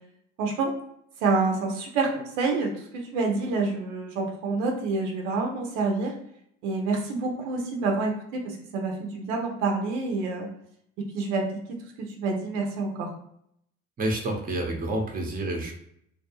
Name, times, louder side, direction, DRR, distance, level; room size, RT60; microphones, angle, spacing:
voice 1, 0.4-0.7 1.2-6.1 6.6-10.5 11.0-11.5 12.0-13.1, right 3 dB, 70° right, 2 dB, 0.7 m, -27 dB
voice 2, 14.0-15.7, right 1 dB, 20° right, 2 dB, 0.7 m, -29 dB
2.3 x 2.3 x 2.9 m, 0.71 s
hypercardioid pair, 65°, 40 cm